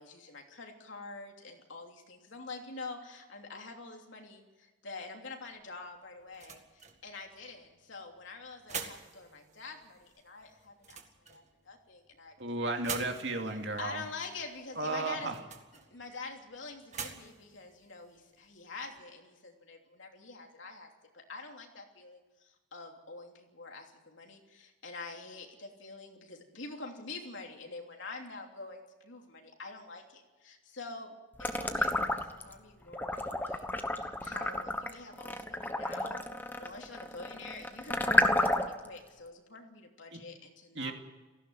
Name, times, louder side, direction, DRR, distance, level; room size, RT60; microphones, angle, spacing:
voice 1, 0.0-11.0 11.3-12.4 12.7-13.1 13.5-15.5 15.9-20.9 21.1-31.1 31.4-33.7 34.0-36.2 36.6-40.9, left 3 dB, 75° left, 2 dB, 3.1 m, -46 dB
sound 1, 5.5-19.0, right 6 dB, 35° right, 1.9 m, -48 dB
voice 2, 12.4-14.0 14.8-15.3 40.1-40.2 40.8-40.9, right 2 dB, 60° right, 3 dB, 2.6 m, -34 dB
sound 2, 31.4-32.5 32.9-38.9, left 1 dB, 10° left, 1.1 m, -31 dB
18.0 x 16.0 x 9.3 m, 1.2 s
head